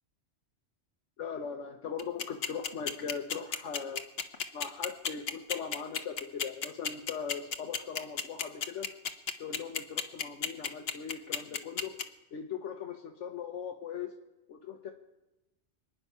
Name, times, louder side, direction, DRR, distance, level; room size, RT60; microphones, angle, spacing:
voice 1, 1.2-4.0 4.5-8.9 9.4-12.0 12.3-14.1 14.5-14.9, left 7 dB, 80° left, 4 dB, 1.2 m, -39 dB
sound 1, 2.0-12.0, left 7 dB, 60° left, 1.1 m, -31 dB
25.5 x 9.8 x 5.5 m, 1.0 s
omnidirectional pair, 1.2 m